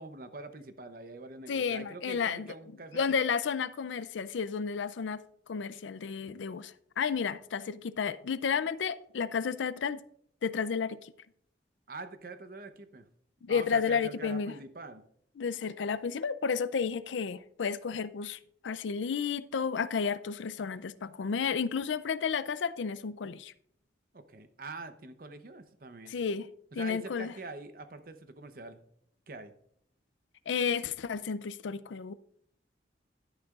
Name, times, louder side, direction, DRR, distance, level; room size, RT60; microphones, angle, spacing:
voice 1, 0.0-3.2 11.9-13.1 13.5-15.0 24.1-26.1 26.7-28.8 29.3-29.5, right 3 dB, 50° right, 0.7 m, -45 dB
voice 2, 1.5-2.5 2.9-5.2 5.5-10.0 10.4-11.1 13.4-14.5 15.4-18.4 18.6-23.5 26.1-26.5 26.7-27.3 30.5-32.1, left 6 dB, 85° left, 0.4 m, -32 dB
11.0 x 10.0 x 2.4 m
head